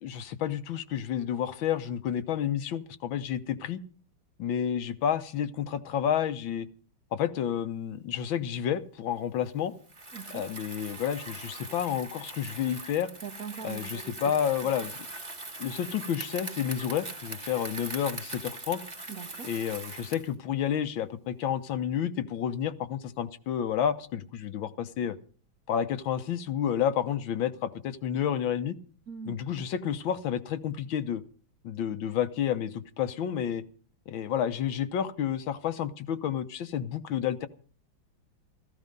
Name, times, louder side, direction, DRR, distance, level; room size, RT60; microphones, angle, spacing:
voice 1, 0.0-3.8 4.4-6.7 7.1-9.7 10.3-13.1 13.6-15.0 15.6-18.8 19.4-25.2 25.7-28.8 29.2-31.2 31.6-33.6 34.1-37.5, left 9 dB, 75° left, 1.7 m, -30 dB
Bicycle, 9.8-20.3, right 2 dB, 20° right, 1.7 m, -41 dB
voice 2, 10.1-10.4 13.2-14.1 19.1-19.5 29.1-29.4, right 7 dB, 55° right, 1.2 m, -41 dB
15.5 x 14.5 x 5.3 m
omnidirectional pair, 2.2 m